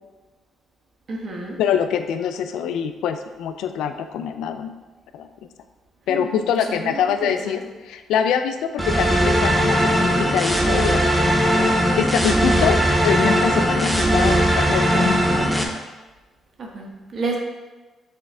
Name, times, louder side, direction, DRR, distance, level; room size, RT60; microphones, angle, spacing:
voice 1, 1.1-1.6 6.1-6.3 6.7-7.6 16.6-17.4, right 3 dB, 50° right, 0 dB, 1.2 m, -30 dB
voice 2, 1.6-4.7 5.1-5.3 6.1-15.5, left 8 dB, 85° left, 8 dB, 0.4 m, -25 dB
sound 1, 8.8-15.6, equal, 5° right, 0.8 m, -19 dB
6.6 x 4.3 x 3.5 m, 1.2 s
cardioid pair, 90°, 0 cm